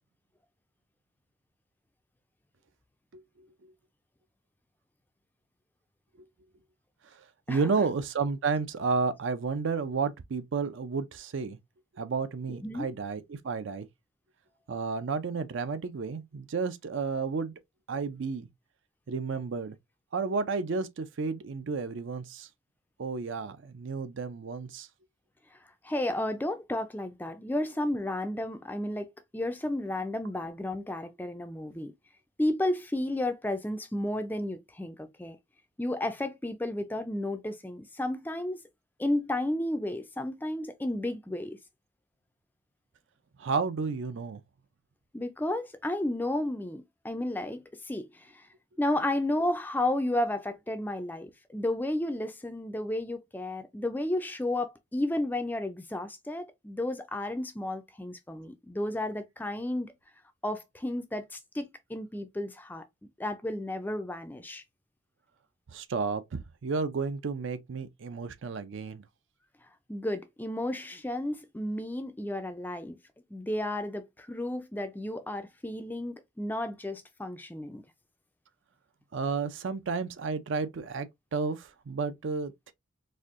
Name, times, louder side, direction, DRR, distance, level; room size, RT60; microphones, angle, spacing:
voice 1, 3.1-3.7 7.1-11.6 11.9-13.9 14.7-17.5 17.9-18.5 19.1-19.8 20.1-22.5 23.0-24.9 43.4-44.4 65.7-69.0 79.1-82.7, right 4 dB, 60° right, 0.4 m, -32 dB
voice 2, 25.8-31.9 32.4-35.4 35.8-38.6 39.0-41.6 45.1-48.5 48.8-59.9 60.4-62.8 63.2-64.6 69.9-73.0 73.3-77.8, left 1 dB, 10° left, 0.3 m, -32 dB
4.2 x 2.6 x 2.4 m
head